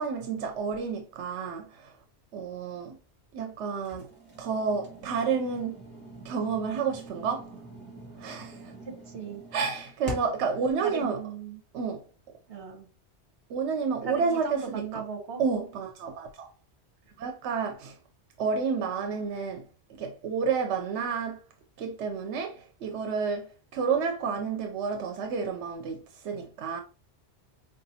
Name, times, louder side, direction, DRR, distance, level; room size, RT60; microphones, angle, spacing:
voice 1, 0.0-1.9 2.3-3.0 3.3-4.1 4.4-5.8 6.2-7.5 8.2-8.7 9.5-11.2 11.7-12.0 13.5-15.0 15.4-16.5 17.2-17.9 18.4-19.6 20.0-21.4 21.8-26.0 26.2-26.8, right 5 dB, 90° right, 0.9 m, -30 dB
sound 1, 3.8-10.5, equal, 30° right, 1.4 m, -44 dB
voice 2, 8.8-9.4 10.8-11.6 12.5-12.9 14.0-15.4, right 6 dB, 65° right, 1.2 m, -37 dB
4.8 x 2.5 x 2.7 m
omnidirectional pair, 1.1 m